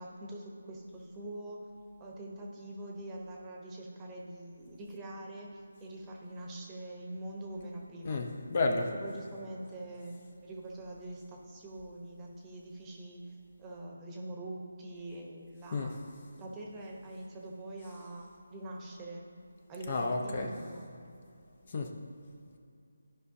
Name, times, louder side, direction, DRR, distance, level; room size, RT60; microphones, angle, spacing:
voice 1, 0.0-1.7 2.0-8.2 9.0-13.2 13.6-16.0 16.4-19.2 19.7-20.9, right 1 dB, 15° right, -1 dB, 0.9 m, -44 dB
voice 2, 8.0-8.9 15.7-16.0 19.9-20.5 21.7-21.9, left 3 dB, 40° left, 4 dB, 0.7 m, -31 dB
13.5 x 5.3 x 2.7 m, 2.5 s
figure-of-eight pair, 160°, 0 cm